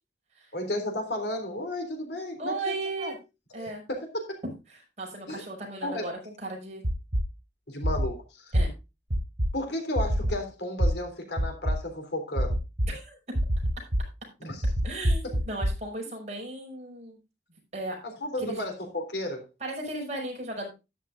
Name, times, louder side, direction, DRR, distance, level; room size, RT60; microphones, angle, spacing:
voice 1, 0.5-3.1 3.6-4.4 5.3-5.4 5.8-6.0 7.7-8.5 9.5-12.6 14.4-14.7 15.2-15.3 18.0-19.5, left 1 dB, 70° left, 4 dB, 3.6 m, -33 dB
voice 2, 2.4-3.2 3.5-3.8 5.0-6.8 8.5-8.7 12.9-13.2 14.8-17.2 17.7-18.0 18.4-18.6 19.6-20.7, right 2 dB, 40° right, 0 dB, 5.8 m, -35 dB
sound 1, 6.8-7.2 7.8-8.1 8.5-8.6 9.1-9.5 10.0-10.3 10.8-10.9 11.4-11.8 12.4-12.9 13.4-14.0 14.6-15.7, equal, 75° right, 2.9 m, -24 dB
13.0 x 11.0 x 2.5 m, 0.26 s
head